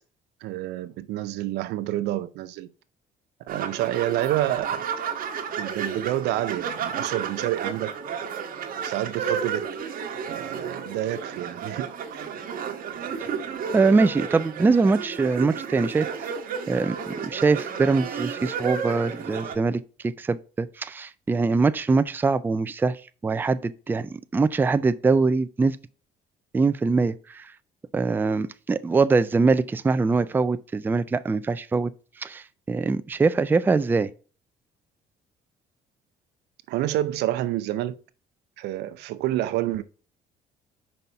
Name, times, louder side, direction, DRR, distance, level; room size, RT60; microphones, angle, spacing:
voice 1, 0.4-2.7 3.5-4.8 5.6-7.9 8.8-9.8 10.3-11.9 12.1-12.3 36.7-37.9 38.6-39.8, right 14 dB, 85° right, 0.6 m, -28 dB
sound 1, 3.5-19.6, right 7 dB, 60° right, 1.2 m, -32 dB
voice 2, 13.7-16.3 16.7-25.8 26.5-27.5 27.9-31.9 32.2-34.1, right 4 dB, 10° right, 0.3 m, -23 dB
5.3 x 4.2 x 4.6 m
cardioid pair, 110°, 17 cm